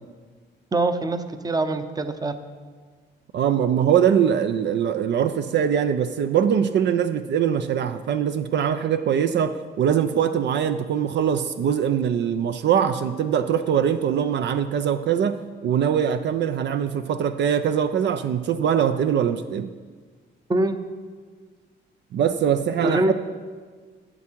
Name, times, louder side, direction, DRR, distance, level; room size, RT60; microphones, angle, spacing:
voice 1, 0.7-2.4 20.5-20.8 22.8-23.1, right 2 dB, 20° right, 9 dB, 0.7 m, -23 dB
voice 2, 3.3-19.7 22.1-23.1, right 8 dB, 60° right, 10 dB, 0.5 m, -22 dB
12.0 x 7.5 x 4.5 m, 1.5 s
cardioid pair, 90°, 20 cm